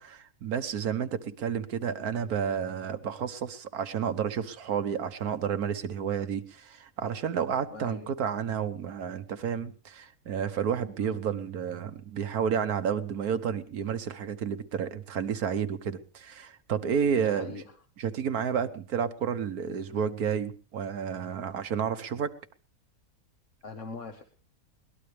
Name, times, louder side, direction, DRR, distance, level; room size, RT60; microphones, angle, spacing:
voice 1, 0.0-17.5 18.0-22.3, right 7 dB, 75° right, 10 dB, 1.6 m, -31 dB
voice 2, 7.7-8.1 11.0-11.2 17.1-17.7 23.6-24.2, left 3 dB, 55° left, 5 dB, 1.7 m, -42 dB
22.0 x 19.0 x 3.4 m, 0.35 s
omnidirectional pair, 1.6 m